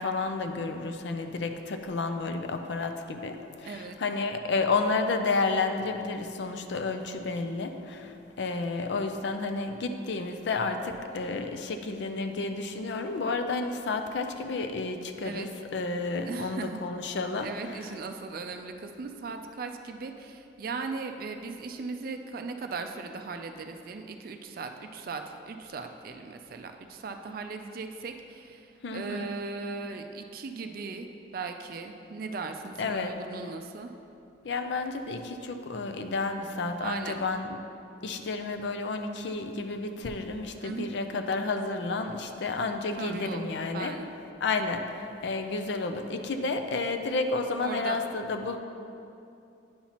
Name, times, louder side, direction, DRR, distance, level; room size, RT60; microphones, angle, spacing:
voice 1, 0.0-17.9 28.8-29.3 32.8-33.2 34.4-37.6 38.0-44.0 44.4-48.6, left 3 dB, 65° left, 6 dB, 0.5 m, -31 dB
voice 2, 3.7-4.0 15.2-15.5 16.2-16.8 17.4-31.1 31.3-33.9 36.8-37.2 40.6-40.9 43.0-43.4 43.7-44.1 47.6-48.0, right 4 dB, 50° right, 6 dB, 0.4 m, -38 dB
9.4 x 5.6 x 2.9 m, 2.6 s
head